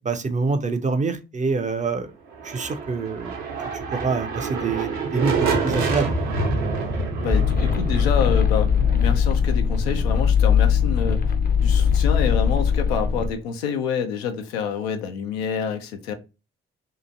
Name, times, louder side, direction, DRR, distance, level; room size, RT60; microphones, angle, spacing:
voice 1, 0.0-2.1 2.4-3.3 3.7-6.1, right 4 dB, 25° right, 0.5 m, -26 dB
sound 1, 2.3-10.1, right 4 dB, 70° right, 0.8 m, -27 dB
voice 2, 7.2-11.2 11.6-16.1, left 6 dB, 80° left, 0.5 m, -27 dB
sound 2, 7.3-13.3, left 7 dB, 30° left, 0.6 m, -20 dB
2.9 x 2.4 x 2.5 m
figure-of-eight pair, 40°, 30 cm